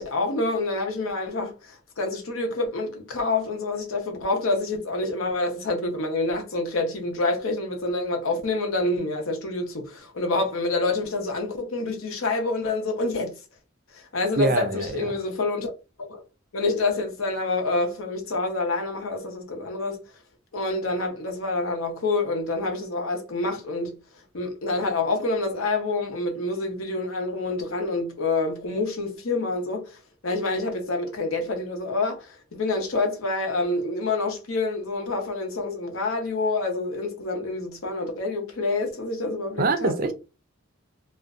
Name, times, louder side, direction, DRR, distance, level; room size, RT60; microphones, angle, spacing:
voice 1, 0.0-13.3 13.9-15.7 16.0-16.2 16.5-20.0 20.5-24.0 24.3-40.1, left 3 dB, 75° left, 0.8 m, -27 dB
voice 2, 14.4-15.1 39.6-40.1, right 3 dB, 45° right, 0.4 m, -24 dB
2.5 x 2.1 x 2.4 m
head